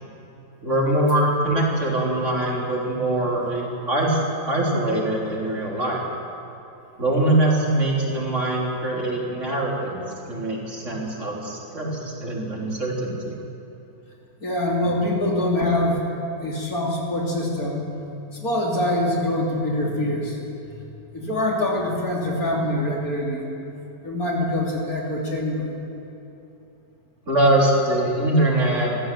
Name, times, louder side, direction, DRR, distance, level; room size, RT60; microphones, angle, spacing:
voice 1, 0.6-4.2 4.5-6.0 7.0-13.4 27.3-28.9, right 1 dB, 40° right, -3 dB, 3.9 m, -23 dB
voice 2, 14.4-16.0 16.4-17.8 18.3-20.4 21.1-23.4 24.0-25.7, left 1 dB, 55° left, -2 dB, 3.6 m, -24 dB
25.0 x 15.0 x 7.7 m, 3.0 s
omnidirectional pair, 1.9 m